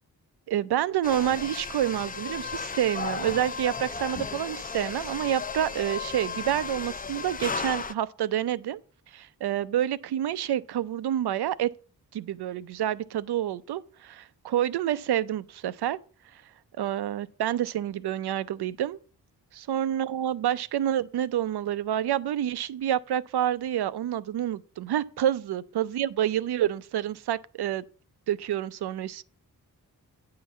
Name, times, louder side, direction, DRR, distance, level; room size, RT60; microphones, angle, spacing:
voice 1, 0.5-8.8 9.1-11.7 12.1-16.0 16.3-16.4 16.8-19.0 19.7-27.8 28.3-29.2, right 11 dB, 85° right, 0.5 m, -28 dB
sound 1, 1.0-7.9, left 5 dB, 25° left, 0.5 m, -35 dB
9.4 x 3.9 x 7.1 m
cardioid pair, 80°, 38 cm